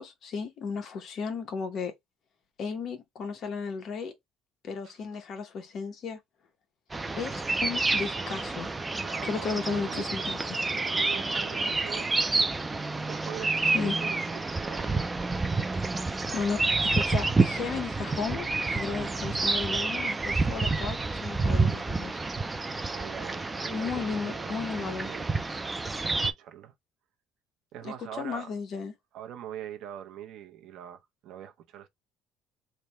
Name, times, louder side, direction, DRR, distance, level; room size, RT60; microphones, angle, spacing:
voice 1, 0.0-1.9 2.6-4.1 4.6-6.2 7.1-8.7 9.2-10.6 13.7-14.0 16.3-22.2 23.7-25.1 27.8-28.9, left 5 dB, 45° left, 0.9 m, -34 dB
sound 1, 6.9-26.3, right 3 dB, 15° right, 0.4 m, -29 dB
voice 2, 9.0-10.4 10.7-12.5 12.7-15.1 19.1-19.3 22.9-25.6 26.0-26.7 27.7-28.5 29.1-31.9, right 11 dB, 65° right, 0.7 m, -43 dB
3.3 x 2.1 x 4.1 m
cardioid pair, 150°, 0 cm